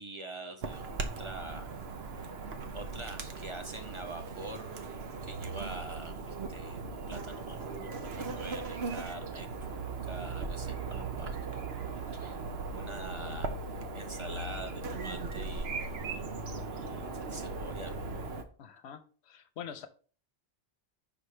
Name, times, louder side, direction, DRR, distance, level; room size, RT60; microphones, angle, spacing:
voice 1, 0.0-1.7 2.7-4.8 5.2-11.7 12.1-12.4 12.7-13.6 13.9-16.1 16.6-18.2, right 2 dB, 30° right, 0.7 m, -45 dB
Chirp tweet / Buzz, 0.6-18.4, right 4 dB, 70° right, 1.0 m, -38 dB
voice 2, 18.6-19.9, left 8 dB, 70° left, 1.0 m, -45 dB
5.6 x 4.4 x 4.9 m
omnidirectional pair, 1.1 m